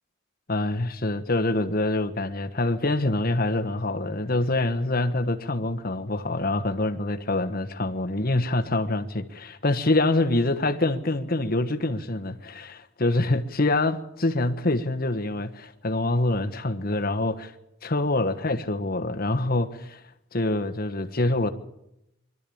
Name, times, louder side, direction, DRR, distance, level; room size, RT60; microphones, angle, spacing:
voice 1, 0.5-17.5 17.8-20.0 20.3-21.5, left 2 dB, 45° left, 1.3 m, -25 dB
24.0 x 12.5 x 8.6 m
head